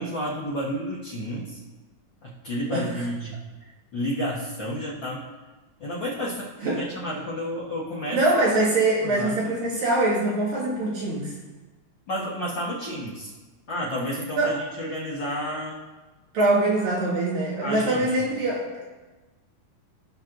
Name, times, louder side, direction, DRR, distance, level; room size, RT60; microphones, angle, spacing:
voice 1, 0.0-1.6 2.2-3.4 3.9-5.3 5.8-8.2 9.0-9.5 12.1-13.3 13.7-15.8 17.6-18.2, equal, 75° left, -6 dB, 1.0 m, -31 dB
voice 2, 8.1-11.4 14.4-14.6 16.3-18.9, right 2 dB, 80° right, -6 dB, 3.7 m, -23 dB
17.0 x 5.9 x 2.6 m, 1.2 s
omnidirectional pair, 4.0 m